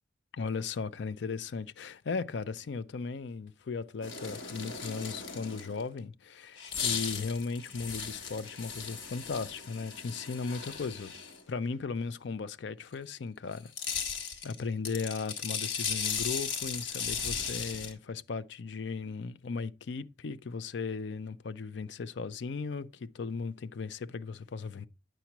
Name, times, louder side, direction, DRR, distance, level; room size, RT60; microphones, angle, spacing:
voice 1, 0.3-11.1 11.5-14.0 14.4-24.9, left 4 dB, 65° left, 0.4 m, -37 dB
sound 1, 4.0-5.8 6.6-11.4 13.5-17.9, left 6 dB, 85° left, 1.5 m, -36 dB
9.0 x 5.9 x 2.9 m
head